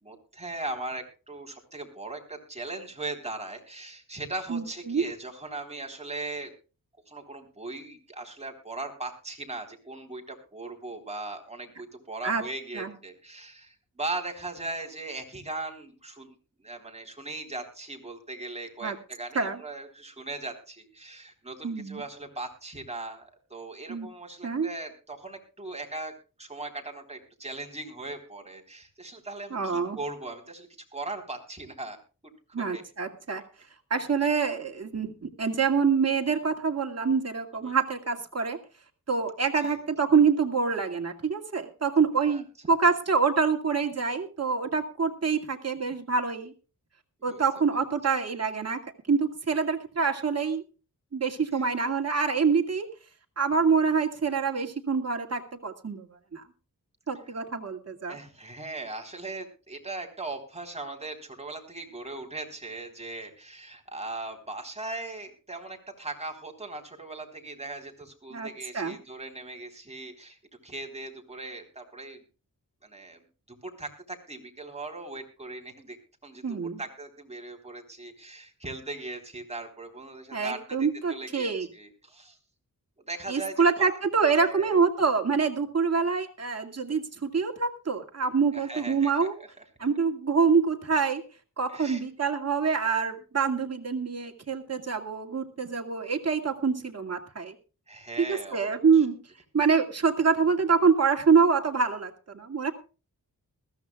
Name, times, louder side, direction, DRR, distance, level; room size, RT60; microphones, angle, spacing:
voice 1, 0.0-6.5 7.1-26.1 26.4-32.0 32.6-32.8 37.6-37.8 39.6-39.8 42.2-42.4 47.3-47.6 51.5-51.7 58.1-72.2 72.8-76.0 76.2-82.4 83.1-84.0 84.3-84.8 88.5-89.6 91.7-92.0 97.9-99.1, right 2 dB, 20° right, 3 dB, 3.9 m, -39 dB
voice 2, 4.5-5.0 12.2-12.4 12.7-12.9 18.8-19.0 19.3-19.6 21.6-22.0 23.9-24.1 24.4-24.7 29.5-30.0 32.5-33.4 33.9-38.6 39.1-46.5 47.2-48.8 49.1-50.6 51.1-52.9 53.4-56.1 56.3-56.4 57.1-58.2 68.3-68.5 68.7-69.0 76.4-76.8 80.3-81.7 83.3-89.3 89.8-91.2 91.6-97.5 98.2-99.2 99.5-102.7, right 5 dB, 45° right, 3 dB, 2.3 m, -26 dB
21.0 x 14.5 x 2.4 m, 0.34 s
wide cardioid pair, 90°, 35 cm